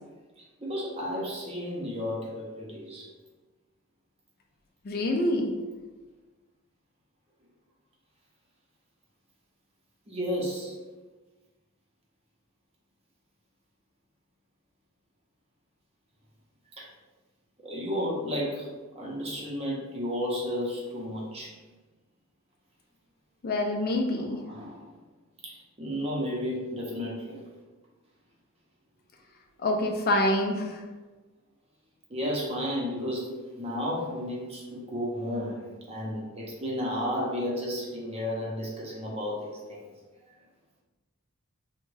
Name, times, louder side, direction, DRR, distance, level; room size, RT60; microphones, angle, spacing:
voice 1, 0.6-3.1 10.1-10.8 16.8-16.9 17.6-18.7 18.9-21.5 24.2-24.9 25.4-27.4 32.1-39.9, equal, 30° right, -3 dB, 0.6 m, -33 dB
voice 2, 4.8-5.5 23.4-24.4 29.6-30.8, left 1 dB, 45° left, 2 dB, 0.4 m, -26 dB
3.4 x 2.2 x 3.2 m, 1.2 s
head